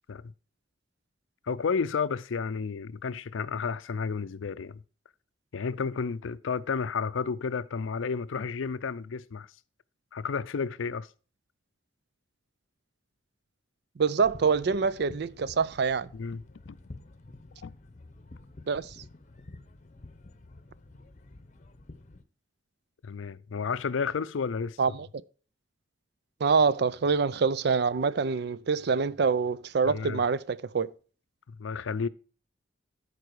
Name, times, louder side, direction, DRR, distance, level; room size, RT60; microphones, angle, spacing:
voice 1, 1.4-4.8 5.5-9.5 10.1-11.1 16.1-16.8 17.6-17.7 23.0-24.8 29.8-30.2 31.5-32.1, left 5 dB, 90° left, 0.5 m, -32 dB
voice 2, 14.0-16.1 18.7-19.0 24.8-25.1 26.4-30.9, right 5 dB, 60° right, 0.4 m, -26 dB
sound 1, 14.2-22.2, left 2 dB, 40° left, 0.8 m, -49 dB
13.0 x 4.8 x 4.7 m
head